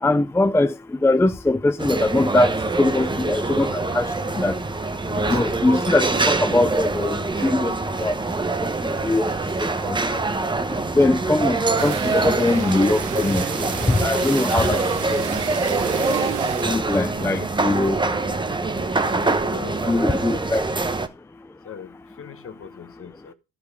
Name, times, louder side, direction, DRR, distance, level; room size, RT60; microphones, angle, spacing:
voice 1, 0.0-0.7 1.0-4.6 5.1-7.7 8.0-8.1 8.6-9.3 9.6-10.2 11.0-15.2 16.7-18.0 19.9-20.6, left 2 dB, 10° left, 0.4 m, -22 dB
sound 1, 1.8-21.1, right 3 dB, 15° right, 0.8 m, -24 dB
Zipper (clothing), 4.7-6.3 6.7-20.5, right 8 dB, 45° right, 0.9 m, -38 dB
sound 2, 11.8-16.9, right 11 dB, 80° right, 0.8 m, -34 dB
voice 2, 17.1-17.4 19.2-20.3 21.6-23.3, left 8 dB, 45° left, 1.2 m, -40 dB
10.5 x 5.0 x 5.0 m
cardioid pair, 90°, 30 cm